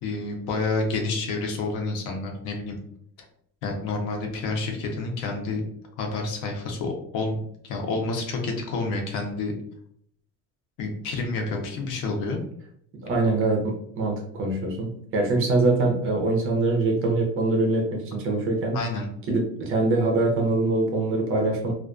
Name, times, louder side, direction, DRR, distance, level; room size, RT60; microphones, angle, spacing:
voice 1, 0.0-2.8 3.6-5.6 6.0-7.4 7.6-9.5 10.8-12.4 18.7-19.1, left 3 dB, 65° left, 2 dB, 0.7 m, -29 dB
voice 2, 12.9-18.8 19.3-21.7, right 2 dB, 35° right, 1 dB, 0.5 m, -24 dB
2.3 x 2.2 x 2.4 m, 0.67 s
cardioid pair, 165°, 36 cm